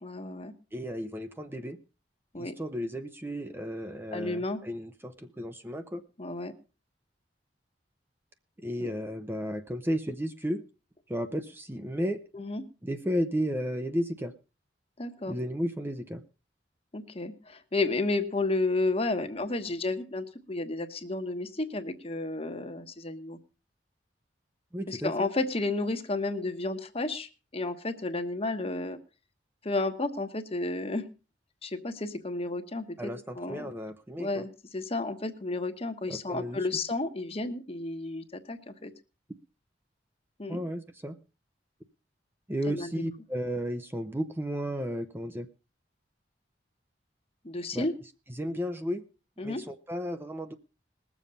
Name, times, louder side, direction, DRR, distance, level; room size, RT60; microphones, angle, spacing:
voice 1, 0.0-0.5 2.3-2.5 4.1-4.6 6.2-6.5 8.8-8.9 12.3-12.6 15.0-15.4 16.9-23.4 24.9-29.0 29.6-31.0 31.6-33.7 34.2-38.9 40.4-40.6 42.7-42.9 47.4-47.9 49.4-49.6, left 2 dB, 35° left, 8 dB, 1.3 m, -32 dB
voice 2, 0.7-1.8 2.4-6.0 8.6-10.6 11.1-12.2 12.8-14.3 15.3-16.2 24.7-25.3 33.0-34.4 36.1-36.7 40.5-41.2 42.5-45.5 47.7-47.9 48.3-49.0 49.4-50.5, equal, 15° right, 8 dB, 0.7 m, -33 dB
20.0 x 7.3 x 5.3 m, 0.33 s
head